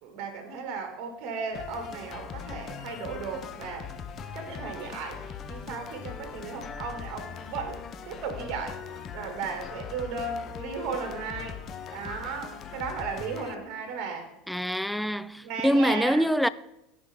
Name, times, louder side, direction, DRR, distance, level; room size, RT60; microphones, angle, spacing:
voice 1, 0.0-3.9 4.3-8.8 9.1-11.6 11.9-14.3 15.4-16.3, right 5 dB, 55° right, 1.9 m, -35 dB
sound 1, 1.5-7.8, left 1 dB, 80° left, 2.5 m, -54 dB
sound 2, 1.5-13.5, left 7 dB, 40° left, 0.7 m, -41 dB
voice 2, 14.5-16.5, equal, ahead, 0.3 m, -25 dB
14.5 x 5.0 x 3.5 m
supercardioid pair, 110°, 0 cm